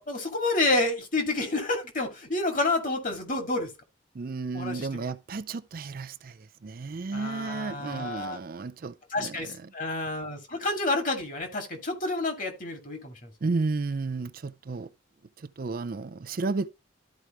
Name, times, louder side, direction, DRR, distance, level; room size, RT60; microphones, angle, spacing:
voice 1, 0.0-3.7 4.5-5.0 7.1-8.4 9.1-13.3, left 2 dB, 40° left, 2.1 m, -29 dB
voice 2, 4.2-6.3 6.6-9.5 13.4-14.9 15.6-16.7, right 3 dB, 45° right, 0.4 m, -32 dB
13.0 x 4.7 x 3.0 m
head